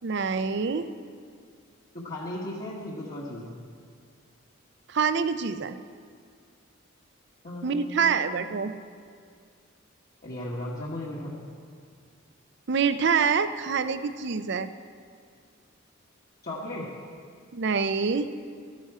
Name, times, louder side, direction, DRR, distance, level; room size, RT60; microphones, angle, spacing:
voice 1, 0.0-0.9 4.9-5.8 7.6-8.7 12.7-14.7 17.5-18.3, right 5 dB, 55° right, 11 dB, 0.5 m, -26 dB
voice 2, 1.9-3.6 7.4-8.4 10.2-11.4 16.4-16.9, left 1 dB, 45° left, -7 dB, 1.5 m, -36 dB
13.5 x 11.0 x 4.9 m, 2.1 s
head